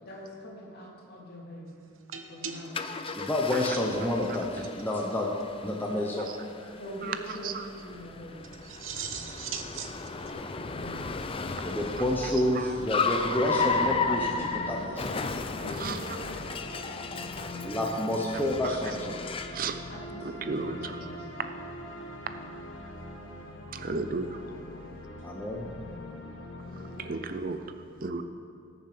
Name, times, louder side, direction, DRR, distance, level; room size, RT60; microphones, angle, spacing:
voice 1, 0.0-1.7 2.3-2.8 6.7-8.5 8.9-9.3 10.6-11.0 15.6-18.0 19.7-21.3 26.6-27.1, equal, 50° left, -3 dB, 2.8 m, -44 dB
sound 1, 2.1-4.4 4.6-4.8 5.1-5.2 5.4-5.5 8.4-10.3, right 7 dB, 90° right, 0.9 m, -40 dB
Car, 2.7-19.6, left 4 dB, 25° left, 0.5 m, -34 dB
voice 2, 3.1-5.3 5.6-6.7 11.6-15.1 17.6-19.1 25.2-25.7, left 1 dB, 10° left, -2 dB, 1.0 m, -29 dB
voice 3, 12.2-12.7 13.6-13.7 15.8-16.0 18.6-19.0 19.5-19.8 20.2-21.1 23.7-24.4 27.0-28.2, right 4 dB, 45° right, 8 dB, 0.6 m, -35 dB
sound 2, 13.0-27.4, left 1 dB, 70° left, 1.4 m, -42 dB
19.5 x 7.0 x 5.1 m, 2.4 s
head